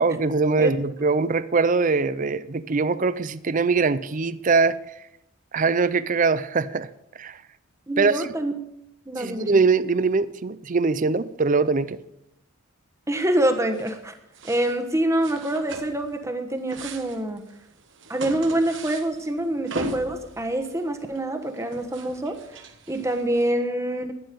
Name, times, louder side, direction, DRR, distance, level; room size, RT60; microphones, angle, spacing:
voice 1, 0.0-4.8 5.5-6.9 7.2-7.4 8.0-8.2 9.2-12.0, right 4 dB, 40° right, 16 dB, 0.5 m, -22 dB
voice 2, 7.9-8.5 9.1-9.5 13.1-14.1 14.4-17.4 18.1-22.4 22.9-24.1, right 1 dB, 15° right, 6 dB, 1.1 m, -26 dB
sound 1, 13.7-14.1 14.3-14.8 15.2-16.2 16.5-23.5, right 2 dB, 60° right, 1.2 m, -38 dB
12.0 x 11.0 x 5.2 m, 0.82 s
head